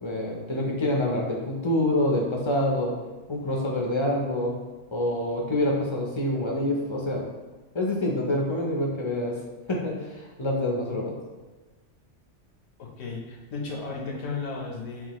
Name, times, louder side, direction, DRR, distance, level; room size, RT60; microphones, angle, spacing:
voice 1, 0.0-3.0 3.3-4.6 4.9-7.2 7.7-9.4 9.7-11.1, left 1 dB, 45° left, -1 dB, 0.4 m, -26 dB
voice 2, 12.8-15.1, left 4 dB, 90° left, -1 dB, 1.2 m, -34 dB
5.7 x 2.4 x 2.9 m, 1.2 s
omnidirectional pair, 1.3 m